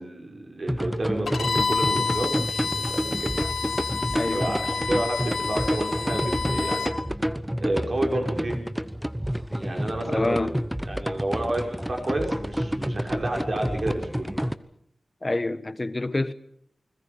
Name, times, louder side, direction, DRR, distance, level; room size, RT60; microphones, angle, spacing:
voice 1, 0.0-3.3 4.3-6.9 7.6-8.6 9.6-10.4 10.8-14.3, right 1 dB, 45° right, 6.2 m, -30 dB
sound 1, 0.7-14.5, equal, 5° right, 1.0 m, -29 dB
Bowed string instrument, 1.3-6.9, left 5 dB, 80° left, 3.7 m, -29 dB
voice 2, 4.1-4.6 10.1-10.5 15.2-16.3, left 2 dB, 25° left, 1.2 m, -27 dB
29.5 x 21.0 x 5.4 m
wide cardioid pair, 115°, 0 cm